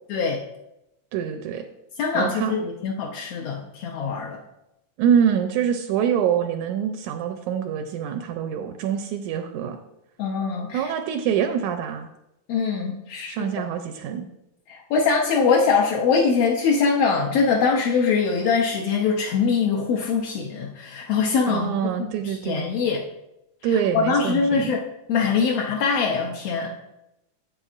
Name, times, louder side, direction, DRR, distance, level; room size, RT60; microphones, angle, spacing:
voice 1, 1.1-1.6 2.1-2.5 5.0-9.8 10.7-12.1 13.3-14.3 21.5-22.7 23.6-24.7, right 8 dB, 80° right, 6 dB, 1.8 m, -25 dB
voice 2, 2.0-4.4 10.2-10.9 12.5-13.5 14.7-21.7 22.0-23.0 23.6-24.8 25.1-26.7, left 5 dB, 75° left, -1 dB, 1.4 m, -23 dB
9.9 x 7.8 x 2.5 m, 0.87 s
omnidirectional pair, 3.6 m